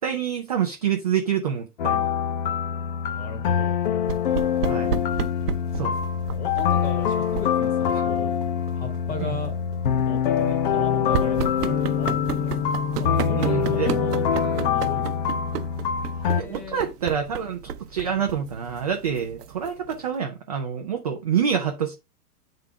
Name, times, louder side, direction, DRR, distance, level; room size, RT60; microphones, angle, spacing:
voice 1, 0.0-2.1 4.7-5.0 5.8-5.9 9.2-9.3 13.4-13.9 16.4-21.9, right 8 dB, 30° right, 0.4 m, -27 dB
sound 1, 1.8-16.4, left 8 dB, 35° left, 0.5 m, -25 dB
voice 2, 3.1-3.7 6.3-8.3 8.7-9.5 10.0-12.6 13.0-15.1 16.2-16.9, left 4 dB, 15° left, 1.4 m, -36 dB
sound 2, 4.0-20.2, right 7 dB, 85° right, 0.8 m, -34 dB
sound 3, 11.7-15.9, left 7 dB, ahead, 0.8 m, -32 dB
8.3 x 3.7 x 3.3 m
supercardioid pair, 165°, 46 cm